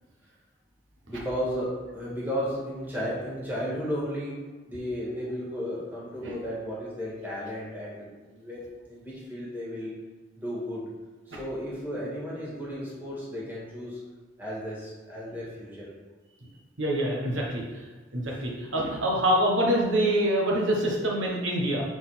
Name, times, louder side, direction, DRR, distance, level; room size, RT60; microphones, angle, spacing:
voice 1, 1.1-4.4 4.7-9.9 10.4-10.8 11.3-14.0 14.4-15.9, equal, 10° right, -7 dB, 1.8 m, -34 dB
voice 2, 16.8-17.6 18.1-21.8, right 1 dB, 85° right, -2 dB, 1.2 m, -25 dB
4.8 x 4.1 x 5.8 m, 1.3 s
head